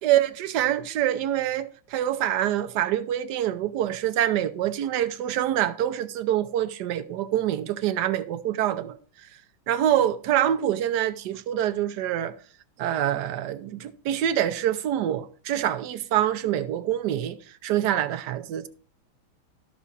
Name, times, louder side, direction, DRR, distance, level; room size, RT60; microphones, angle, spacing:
voice 1, 0.0-9.0 9.7-12.3 12.8-17.4 17.6-18.7, right 11 dB, 80° right, 0.9 m, -25 dB
12.5 x 6.1 x 4.1 m
omnidirectional pair, 2.4 m